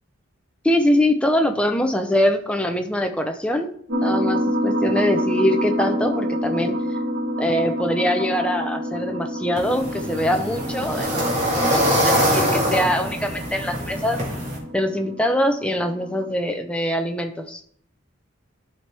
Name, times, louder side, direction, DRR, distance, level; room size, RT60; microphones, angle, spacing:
voice 1, 0.6-3.7 4.0-6.8 7.4-11.3 11.6-14.2 14.7-17.6, left 1 dB, 5° left, 4 dB, 0.6 m, -23 dB
sound 1, 3.9-16.3, equal, 50° right, 1.2 m, -28 dB
sound 2, 9.6-14.6, equal, 35° right, 2.0 m, -23 dB
11.5 x 4.5 x 3.4 m, 0.64 s
head